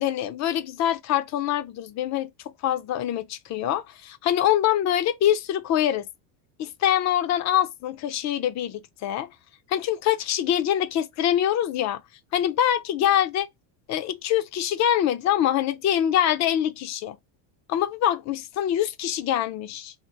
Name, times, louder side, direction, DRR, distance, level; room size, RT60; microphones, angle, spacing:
voice 1, 0.0-2.3 2.6-6.1 6.6-9.3 9.7-12.0 12.3-13.5 13.9-17.2 17.7-19.9, left 11 dB, 35° left, 0.5 m, -24 dB
4.2 x 2.5 x 4.5 m
cardioid pair, 145°, 49 cm